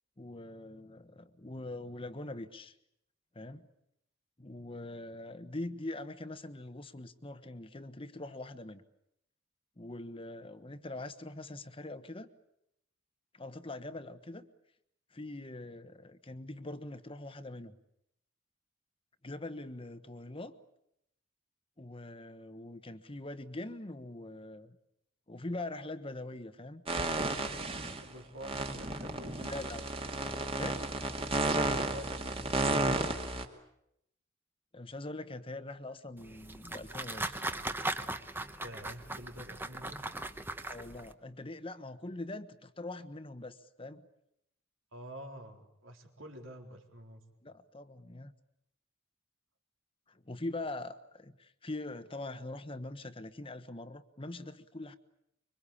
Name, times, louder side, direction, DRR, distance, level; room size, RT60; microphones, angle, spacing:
voice 1, 0.2-2.7 3.3-3.7 4.4-8.8 9.8-12.3 13.3-14.5 15.1-17.7 19.2-20.6 21.8-24.8 25.3-26.8 27.8-28.0 29.4-29.8 30.2-30.9 34.7-37.5 40.7-44.1 47.4-48.3 50.2-54.9, left 2 dB, 25° left, 11 dB, 1.2 m, -43 dB
sound 1, 26.9-28.0 28.4-33.4, right 2 dB, 30° right, 2.2 m, -33 dB
voice 2, 28.0-29.5 31.8-33.0 38.6-40.1 44.9-47.2, equal, 80° right, 4 dB, 4.1 m, -48 dB
sound 2, 36.2-41.1, right 2 dB, 10° right, 1.1 m, -39 dB
25.5 x 24.0 x 8.6 m, 0.79 s
head